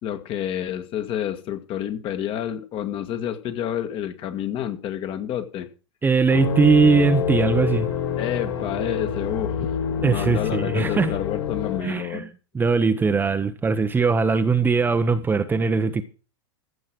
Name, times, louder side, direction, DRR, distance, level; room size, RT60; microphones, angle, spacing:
voice 1, 0.0-5.7 8.2-9.7 10.0-12.3, left 10 dB, 40° left, 1.8 m, -29 dB
voice 2, 6.0-7.9 10.0-11.1 11.8-12.3 12.5-16.0, right 4 dB, 15° right, 0.9 m, -20 dB
sound 1, 6.3-11.8, left 7 dB, 70° left, 4.3 m, -26 dB
15.0 x 6.3 x 6.1 m
hypercardioid pair, 115°, 14 cm